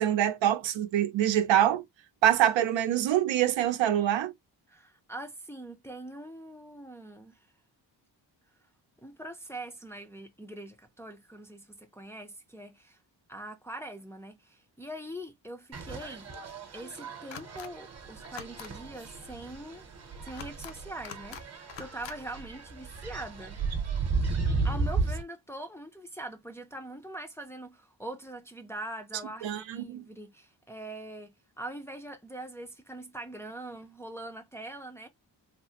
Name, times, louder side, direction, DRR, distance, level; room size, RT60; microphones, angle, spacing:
voice 1, 0.0-1.8 2.2-4.3 29.4-30.0, right 11 dB, 85° right, 0.6 m, -25 dB
voice 2, 4.7-7.5 9.0-13.0 13.3-16.3 16.7-19.8 20.2-23.6 24.6-35.1, right 1 dB, 5° left, 0.4 m, -43 dB
sound 1, 15.7-25.2, right 4 dB, 35° right, 0.8 m, -34 dB
sound 2, 17.3-17.7 18.2-18.7 20.3-20.7 21.0-21.4 21.7-22.2, left 9 dB, 80° left, 0.6 m, -44 dB
3.3 x 2.0 x 2.7 m
wide cardioid pair, 135°, 44 cm